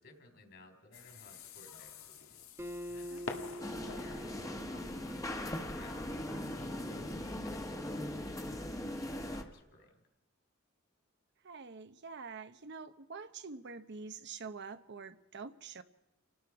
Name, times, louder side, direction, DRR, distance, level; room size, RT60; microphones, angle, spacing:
voice 1, 0.0-2.4 2.9-7.1 7.4-10.0, left 2 dB, 55° left, 4 dB, 3.9 m, -58 dB
sound 1, 0.9-7.4, left 4 dB, 85° left, 1.9 m, -50 dB
Acoustic guitar, 2.6-6.0, left 1 dB, 15° right, 1.4 m, -46 dB
voice 2, 3.1-3.6 11.4-15.8, right 4 dB, 55° right, 11 dB, 0.8 m, -46 dB
sound 2, 3.6-9.4, left 1 dB, 15° left, 1.3 m, -40 dB
29.5 x 18.0 x 4.8 m, 0.88 s
head